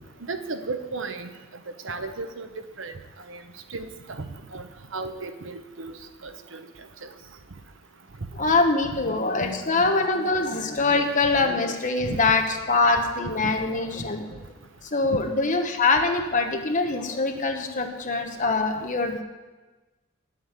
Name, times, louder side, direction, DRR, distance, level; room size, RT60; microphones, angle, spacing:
voice 1, 0.2-1.3 1.8-2.5 2.8-2.9 3.3-3.4 3.7-4.2 4.5-4.6 4.9-5.9 6.2-6.6 12.0-12.2, right 3 dB, 65° right, 8 dB, 0.9 m, -34 dB
voice 2, 8.3-14.2 14.9-19.2, left 3 dB, 40° left, 4 dB, 1.2 m, -23 dB
9.7 x 7.9 x 8.2 m, 1.2 s
head